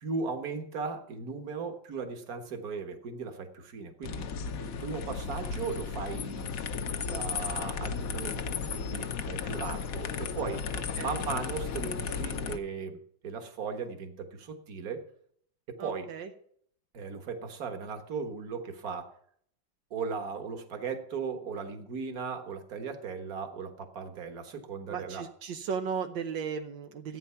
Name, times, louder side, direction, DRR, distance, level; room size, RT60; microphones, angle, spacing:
voice 1, 0.0-4.3 4.6-6.5 7.1-10.7 11.0-15.0 15.7-16.1 16.9-19.1 19.9-25.3, right 5 dB, 50° right, 6 dB, 1.9 m, -37 dB
sound 1, 4.0-12.6, left 6 dB, 55° left, 1.1 m, -34 dB
voice 2, 15.8-16.3 24.9-27.2, right 6 dB, 80° right, 6 dB, 1.6 m, -35 dB
14.5 x 9.1 x 5.7 m, 0.64 s
omnidirectional pair, 2.0 m